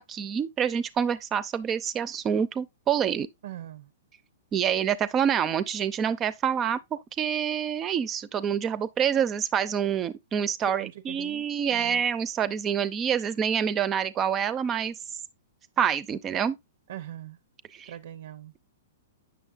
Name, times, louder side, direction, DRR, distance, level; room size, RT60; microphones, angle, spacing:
voice 1, 0.0-3.3 4.5-15.0 15.8-16.6 17.7-17.9, right 8 dB, 25° right, 0.6 m, -27 dB
voice 2, 3.4-3.9 10.7-12.1 16.9-17.4 17.9-18.5, right 12 dB, 70° right, 0.6 m, -41 dB
8.1 x 6.3 x 2.3 m
hypercardioid pair, 135°, 0 cm